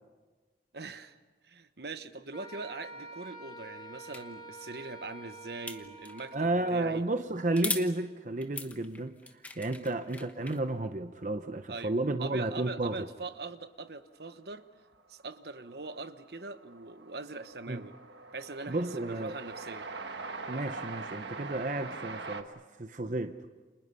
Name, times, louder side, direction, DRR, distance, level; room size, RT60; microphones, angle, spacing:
voice 1, 0.7-1.2 1.4-7.0 9.7-10.0 11.7-11.9 12.2-14.7 15.1-17.9 18.3-19.9, right 3 dB, 70° right, 11 dB, 1.1 m, -42 dB
Wind instrument woodwind instrument, 2.3-6.7, right 2 dB, 25° left, 5.9 m, -47 dB
sound 1, 4.1-4.2 5.7-6.3 7.5-7.9 8.4-10.6, left 3 dB, 10° left, 1.1 m, -38 dB
voice 2, 6.3-9.2 9.6-13.1 17.7-17.8 18.7-19.3 20.5-22.5 22.8-23.3, right 2 dB, 45° right, 8 dB, 0.8 m, -32 dB
Train, 15.0-15.1 15.3-22.4, right 3 dB, 85° right, 1.5 m, -43 dB
30.0 x 27.0 x 5.6 m, 1.3 s
head